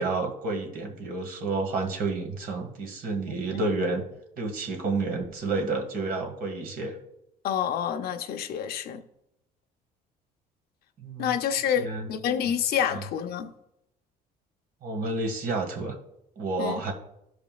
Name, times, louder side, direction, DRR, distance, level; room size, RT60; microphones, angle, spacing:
voice 1, 0.0-4.1 4.4-7.0 11.0-11.4 11.8-12.1 12.9-13.0 14.8-16.0 16.4-16.9, right 3 dB, 60° right, 1.8 m, -30 dB
voice 2, 7.4-9.0 11.2-13.5 16.6-16.8, left 9 dB, 65° left, 0.8 m, -28 dB
14.5 x 5.1 x 2.3 m
cardioid pair, 110°, 17 cm